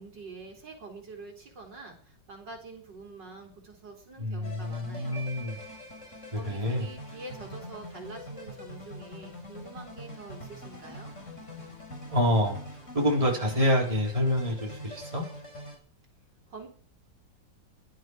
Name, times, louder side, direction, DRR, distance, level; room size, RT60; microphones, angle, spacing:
voice 1, 0.0-5.3 6.3-11.1 16.5-16.7, right 3 dB, 70° right, 2 dB, 4.1 m, -46 dB
voice 2, 4.2-5.6 6.3-6.9 12.1-12.6 12.9-15.3, left 1 dB, 20° right, -2 dB, 4.2 m, -27 dB
sound 1, 4.4-15.8, equal, 40° left, 5.0 m, -44 dB
sound 2, 5.1-7.2, right 5 dB, 15° left, 6.3 m, -50 dB
17.5 x 11.5 x 4.8 m, 0.43 s
omnidirectional pair, 2.0 m